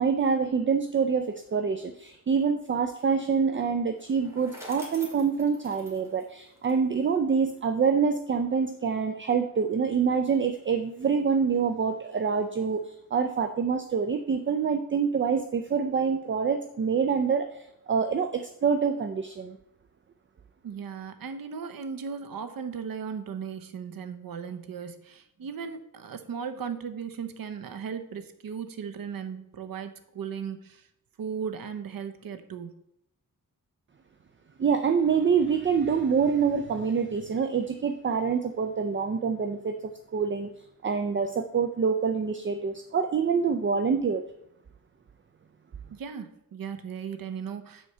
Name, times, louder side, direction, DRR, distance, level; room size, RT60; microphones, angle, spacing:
voice 1, 0.0-12.8 13.1-19.6 34.6-40.5 40.8-44.2, right 6 dB, 35° right, 8 dB, 0.5 m, -26 dB
Bicycle, 3.9-7.1, equal, 10° right, 2.3 m, -47 dB
voice 2, 20.6-30.8 31.2-32.7 45.9-47.9, right 6 dB, 80° right, 9 dB, 0.9 m, -37 dB
6.4 x 4.5 x 6.6 m, 0.79 s
wide cardioid pair, 100°, 34 cm